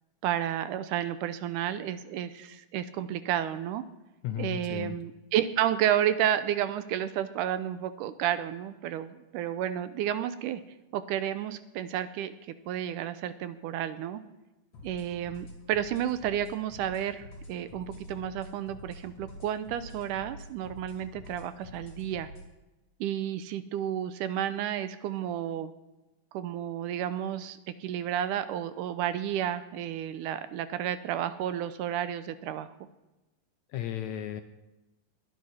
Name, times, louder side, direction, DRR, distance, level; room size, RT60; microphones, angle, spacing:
voice 1, 0.2-3.8 4.4-10.6 10.9-12.3 12.7-14.2 14.8-22.3 23.0-25.7 26.3-32.7, right 10 dB, 80° right, 12 dB, 2.1 m, -31 dB
voice 2, 4.2-5.0 33.7-34.4, left 11 dB, 75° left, 8 dB, 1.8 m, -34 dB
sound 1, 14.7-22.5, left 1 dB, 50° left, 3.8 m, -47 dB
21.5 x 9.6 x 4.3 m, 1.0 s
omnidirectional pair, 3.8 m